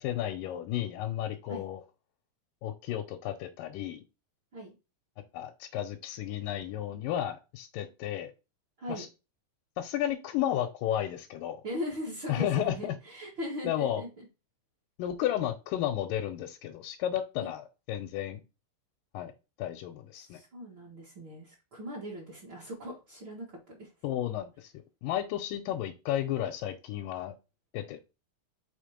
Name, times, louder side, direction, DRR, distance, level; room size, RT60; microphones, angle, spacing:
voice 1, 0.0-1.8 2.6-4.0 5.3-8.3 8.9-9.1 9.8-11.6 12.3-13.0 13.6-14.0 15.0-18.4 19.1-19.3 19.6-20.4 24.0-24.7 25.0-27.3 27.7-28.0, left 11 dB, 80° left, 4 dB, 2.3 m, -33 dB
voice 2, 11.6-14.1 17.4-17.5 20.1-23.9, equal, 40° right, -3 dB, 2.0 m, -39 dB
5.7 x 3.6 x 5.0 m, 0.28 s
omnidirectional pair, 4.0 m